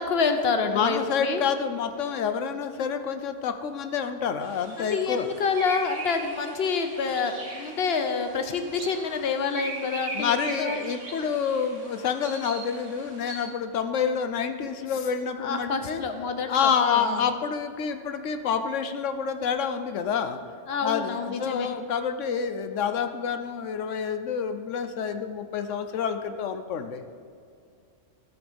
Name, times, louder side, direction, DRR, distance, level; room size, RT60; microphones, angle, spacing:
voice 1, 0.0-1.4 4.8-10.9 15.4-17.3 20.7-21.7, left 5 dB, 55° left, 7 dB, 1.1 m, -28 dB
voice 2, 0.7-5.3 10.1-16.0 16.5-20.4 20.8-27.1, left 7 dB, 80° left, 8 dB, 1.0 m, -28 dB
sound 1, 4.4-13.5, right 2 dB, 80° right, 1.7 m, -40 dB
14.0 x 6.2 x 5.2 m, 2.4 s
omnidirectional pair, 1.3 m